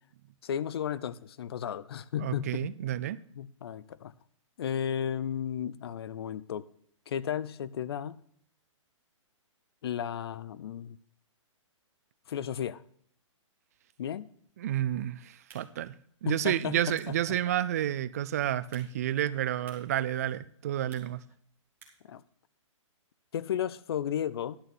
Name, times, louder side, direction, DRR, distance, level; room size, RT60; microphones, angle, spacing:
voice 1, 0.4-2.7 3.4-4.1 4.6-6.7 7.1-8.2 9.8-11.0 12.3-12.8 14.0-14.3 16.3-17.0 17.3-17.4 22.1-22.2 23.3-24.6, left 9 dB, 50° left, 0.5 m, -34 dB
voice 2, 2.2-3.2 14.6-15.9 16.2-21.2, right 12 dB, 30° right, 0.4 m, -30 dB
sound 1, 15.3-22.2, right 5 dB, 15° right, 1.9 m, -61 dB
11.0 x 6.4 x 6.0 m
hypercardioid pair, 165°, 17 cm